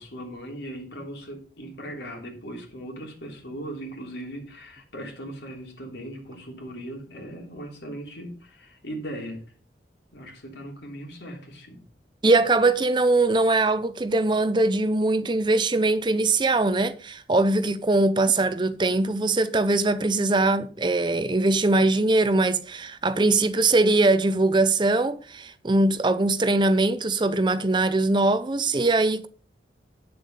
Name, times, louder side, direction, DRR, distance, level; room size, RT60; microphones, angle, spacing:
voice 1, 0.0-9.5 10.1-11.8, right 1 dB, 75° left, 3.2 m, -38 dB
voice 2, 12.2-29.3, right 2 dB, 25° right, 0.6 m, -21 dB
9.3 x 6.9 x 5.5 m
head